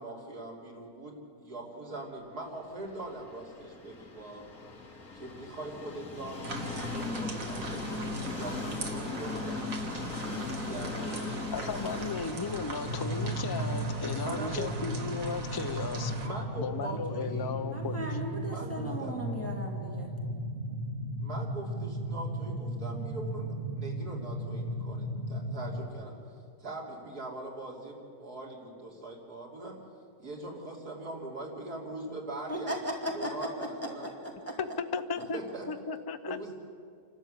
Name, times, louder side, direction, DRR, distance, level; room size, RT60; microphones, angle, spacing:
voice 1, 0.0-4.4 5.1-9.7 10.6-11.7 14.2-14.7 16.2-17.5 18.4-19.1 21.2-26.2 26.6-29.8 30.2-32.7 33.1-34.1 35.3-35.7 36.3-36.5, right 2 dB, 80° right, -2 dB, 3.9 m, -42 dB
Train, 2.8-18.6, left 3 dB, 65° left, 3.9 m, -40 dB
sound 1, 6.4-16.3, right 1 dB, 60° right, 2.2 m, -39 dB
voice 2, 11.5-16.1 16.6-18.2 34.6-35.4 35.7-36.4, left 5 dB, 35° left, 9 dB, 0.3 m, -35 dB
sound 2, 12.9-25.9, right 1 dB, 40° right, 2.3 m, -36 dB
voice 3, 17.7-20.1 32.5-33.7 34.0-34.6, equal, 10° left, -1 dB, 2.2 m, -36 dB
28.5 x 12.5 x 8.1 m, 2.3 s
omnidirectional pair, 1.6 m